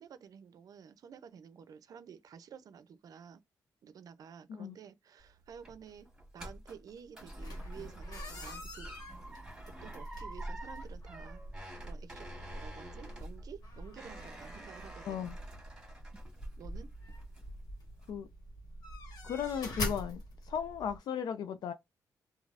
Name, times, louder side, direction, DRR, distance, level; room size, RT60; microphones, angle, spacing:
voice 1, 0.0-3.4 3.8-6.1 6.3-8.9 9.8-15.2 16.6-16.9, right 7 dB, 65° right, 0.5 m, -52 dB
sound 1, 5.2-16.8 17.1-17.6 18.0-18.1, right 1 dB, 10° right, 1.6 m, -49 dB
sound 2, 7.4-21.0, left 1 dB, 70° left, 1.3 m, -44 dB
voice 2, 19.2-21.7, left 8 dB, 85° left, 0.4 m, -36 dB
3.3 x 2.3 x 2.4 m
wide cardioid pair, 155°, 7 cm